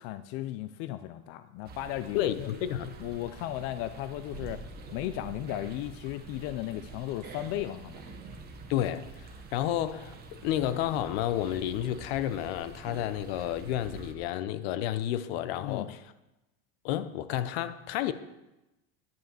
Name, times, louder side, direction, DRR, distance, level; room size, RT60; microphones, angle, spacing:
voice 1, 0.0-2.5 3.0-4.6 4.9-8.0 15.6-15.9, left 14 dB, 50° left, 0.4 m, -35 dB
sound 1, 1.6-14.1, right 4 dB, 30° right, 1.2 m, -46 dB
voice 2, 2.1-2.9 8.7-16.0 16.8-18.1, left 12 dB, 75° left, 0.8 m, -31 dB
10.5 x 5.7 x 7.4 m
cardioid pair, 165°, 31 cm